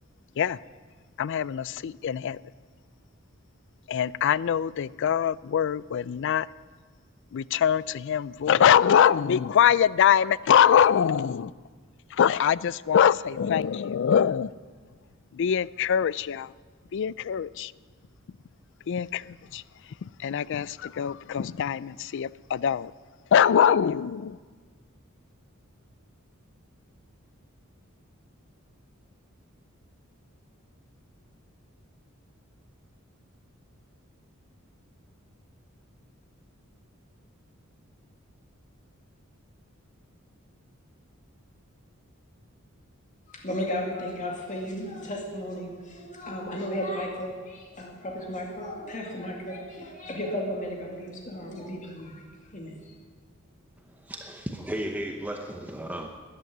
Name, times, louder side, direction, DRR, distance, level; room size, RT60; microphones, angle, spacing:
voice 1, 1.2-2.4 3.9-6.5 7.3-11.5 12.1-14.5 15.3-16.5 16.9-17.7 18.9-19.6 20.0-22.9 23.3-24.4, left 8 dB, 60° left, 0.4 m, -23 dB
voice 2, 43.3-52.2 52.5-52.9, equal, 35° left, 2.3 m, -34 dB
voice 3, 53.8-56.1, right 1 dB, 10° right, 0.8 m, -35 dB
13.5 x 10.5 x 9.3 m
head